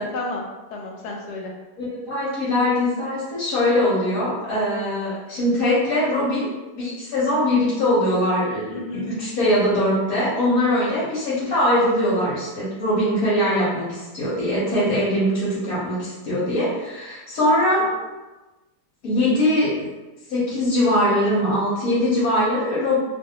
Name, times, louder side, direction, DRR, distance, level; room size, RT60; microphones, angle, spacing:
voice 1, 0.1-1.5 8.7-9.1 14.4-14.6, left 2 dB, 80° left, -1 dB, 1.2 m, -32 dB
voice 2, 1.8-17.9 19.0-19.9 20.3-23.0, left 1 dB, 65° left, -10 dB, 1.3 m, -22 dB
2.9 x 2.6 x 2.7 m, 1.1 s
omnidirectional pair, 1.7 m